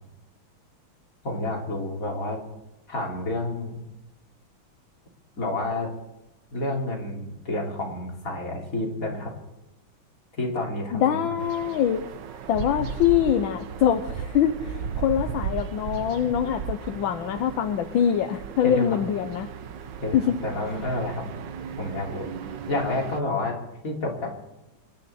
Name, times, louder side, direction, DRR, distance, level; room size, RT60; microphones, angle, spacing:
voice 1, 1.2-2.4 2.9-3.8 5.3-5.9 6.5-9.3 10.4-11.4 12.8-12.9 18.6-19.0 20.0-21.3 21.8-22.3 22.7-23.6 23.8-24.3, left 2 dB, 40° left, -1 dB, 3.5 m, -29 dB
voice 2, 10.9-12.0 12.5-19.5 20.1-20.3, left 9 dB, 75° left, 7 dB, 1.5 m, -24 dB
sound 1, 11.4-23.2, right 8 dB, 65° right, 1.5 m, -36 dB
27.0 x 11.0 x 4.3 m, 0.97 s
omnidirectional pair, 2.2 m